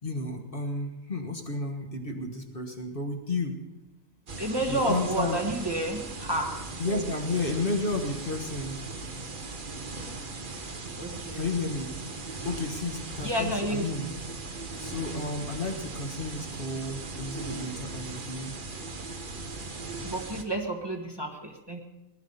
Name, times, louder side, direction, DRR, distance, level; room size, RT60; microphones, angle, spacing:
voice 1, 0.0-3.6 4.7-5.4 6.8-8.8 11.3-12.0 12.4-14.1 14.8-18.5, left 3 dB, 45° left, 4 dB, 1.5 m, -32 dB
sound 1, 4.3-20.4, right 3 dB, 40° right, 1.3 m, -38 dB
voice 2, 4.4-7.4 11.0-11.5 13.2-13.9 20.0-21.8, right 1 dB, 20° right, 2 dB, 1.4 m, -31 dB
19.0 x 11.5 x 5.5 m, 1.0 s
omnidirectional pair, 1.4 m